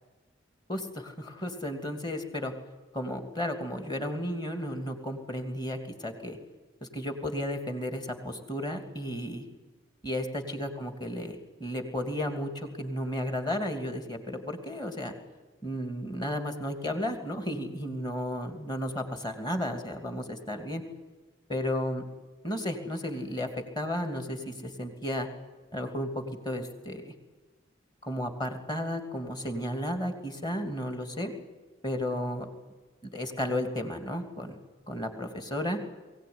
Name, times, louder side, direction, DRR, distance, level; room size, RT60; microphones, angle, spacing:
voice 1, 0.7-2.5 2.9-6.4 6.8-9.5 10.0-15.1 15.6-20.8 21.5-22.0 22.4-23.5 23.8-25.3 25.7-27.1 28.0-31.3 31.8-32.5 33.1-34.6 34.9-35.8, left 1 dB, 20° left, 6 dB, 2.7 m, -33 dB
22.5 x 17.0 x 9.7 m, 1.2 s
head